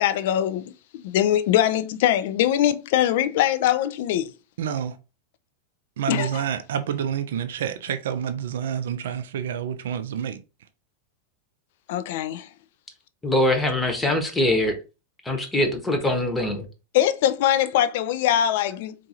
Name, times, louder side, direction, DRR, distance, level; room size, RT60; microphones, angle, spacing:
voice 1, 0.0-4.3 6.1-6.4 11.9-12.5 16.9-18.9, left 11 dB, 50° left, 0.4 m, -22 dB
voice 2, 4.6-5.0 6.0-10.4, right 8 dB, 60° right, 0.4 m, -28 dB
voice 3, 13.2-14.7 15.2-16.6, left 1 dB, 10° left, 0.9 m, -23 dB
4.5 x 2.6 x 2.8 m
figure-of-eight pair, 90°, 0 cm